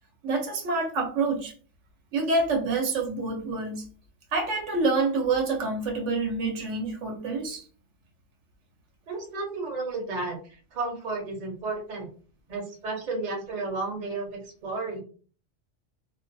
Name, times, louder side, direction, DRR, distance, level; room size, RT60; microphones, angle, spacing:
voice 1, 0.2-1.5 2.1-3.8 4.3-7.7, right 3 dB, 85° right, 1.0 m, -27 dB
voice 2, 9.1-12.1 12.5-15.0, right 3 dB, 45° right, 0.8 m, -33 dB
2.4 x 2.3 x 2.5 m
omnidirectional pair, 1.2 m